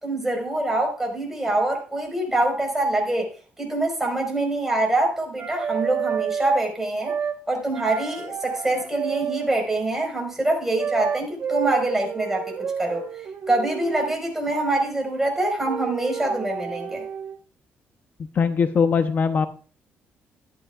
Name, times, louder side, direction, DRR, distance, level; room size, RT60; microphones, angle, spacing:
voice 1, 0.0-3.3 3.6-7.1 7.5-12.5 12.8-13.1 13.5-17.0, right 2 dB, 10° right, 4.7 m, -25 dB
sound 1, 5.4-6.7 7.0-7.4 7.7-9.6 10.8-14.2 15.6-17.4, right 7 dB, 50° right, 1.3 m, -30 dB
voice 2, 18.3-19.5, left 6 dB, 45° left, 0.8 m, -20 dB
13.5 x 11.0 x 2.4 m
cardioid pair, 110°, 4 cm